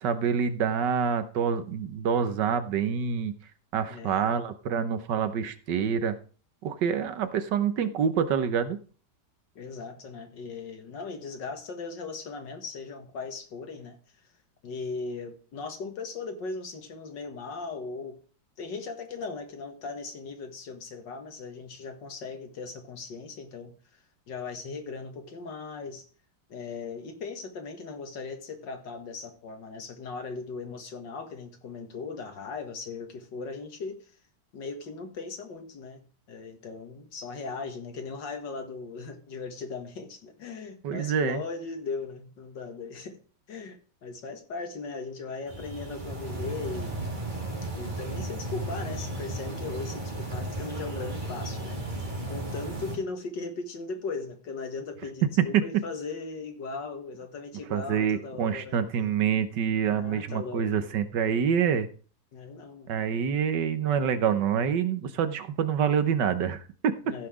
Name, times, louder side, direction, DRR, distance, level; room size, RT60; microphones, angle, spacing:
voice 1, 0.0-3.3 3.7-6.2 6.6-8.8 40.8-41.4 55.4-55.8 57.7-61.9 62.9-66.9, right 7 dB, 75° right, 11 dB, 1.6 m, -26 dB
voice 2, 3.9-4.3 9.6-14.0 14.6-18.2 18.6-26.1 26.5-34.0 34.5-43.2 43.5-47.0 47.8-51.8 52.3-58.8 59.8-60.7 62.3-62.9 67.1-67.3, left 4 dB, 80° left, 6 dB, 2.3 m, -38 dB
sound 1, 45.5-53.0, right 1 dB, 25° right, 2.6 m, -34 dB
15.0 x 5.9 x 4.9 m, 0.39 s
omnidirectional pair, 1.9 m